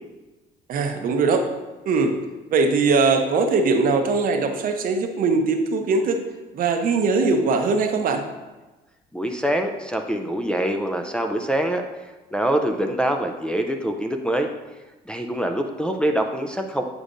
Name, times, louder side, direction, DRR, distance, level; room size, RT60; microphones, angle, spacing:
voice 1, 0.7-1.4 1.9-2.1 2.5-6.2 6.5-8.2, right 4 dB, 55° right, 5 dB, 0.7 m, -21 dB
voice 2, 9.1-14.5 15.1-16.8, right 1 dB, 5° left, 3 dB, 0.4 m, -25 dB
8.2 x 4.9 x 2.5 m, 1.2 s
cardioid pair, 110°, 17 cm